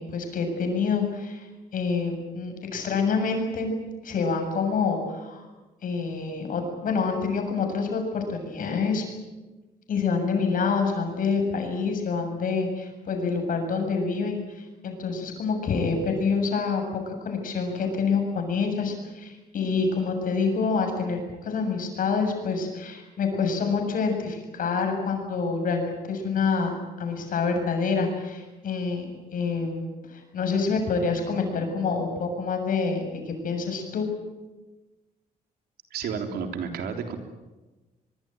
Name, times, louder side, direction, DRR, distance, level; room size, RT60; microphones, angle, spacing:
voice 1, 0.0-1.5 1.7-3.7 4.0-5.5 5.8-9.0 9.9-26.7 27.0-29.1 29.3-29.8 30.1-34.1, left 4 dB, 60° left, 4 dB, 7.5 m, -27 dB
voice 2, 35.9-37.2, right 6 dB, 90° right, 5 dB, 3.6 m, -31 dB
23.5 x 23.0 x 9.1 m, 1.2 s
cardioid pair, 125°, 16 cm